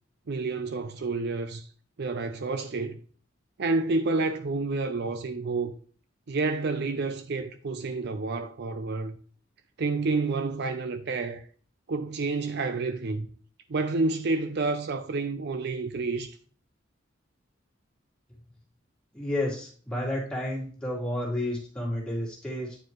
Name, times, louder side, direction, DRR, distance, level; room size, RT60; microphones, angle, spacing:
voice 1, 0.3-1.7 2.0-3.0 3.6-5.7 6.3-9.2 9.8-11.4 11.9-13.3 13.7-16.4, right 3 dB, 55° right, 0.5 m, -29 dB
voice 2, 19.1-22.8, left 1 dB, 5° left, 2.4 m, -31 dB
9.1 x 4.8 x 3.1 m
head